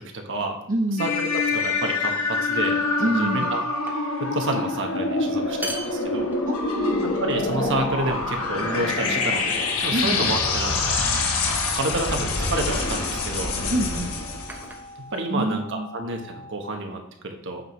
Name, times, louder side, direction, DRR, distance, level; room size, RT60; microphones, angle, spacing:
voice 1, 0.0-0.6 1.0-2.8 3.0-3.6 3.9-6.3 7.0-11.0 11.7-13.5 15.1-17.6, right 2 dB, 60° right, 3 dB, 1.1 m, -29 dB
voice 2, 0.7-1.1 3.0-3.5 6.5-7.1 9.9-10.2 13.7-14.1 15.3-15.9, right 1 dB, 40° right, -1 dB, 0.7 m, -26 dB
sound 1, 1.0-14.7, left 3 dB, 85° left, 1.1 m, -25 dB
sound 2, 1.5-1.8 2.6-3.1 3.4-4.3 4.6-4.8 5.4-6.8 7.3-7.9 8.7-9.2 10.1-10.5 11.1-11.5 12.7-12.9 13.8-15.6, right 1 dB, 10° right, 0.8 m, -41 dB
sound 3, 6.7-16.7, left 1 dB, 45° left, 1.8 m, -44 dB
8.7 x 5.4 x 3.1 m, 0.74 s
head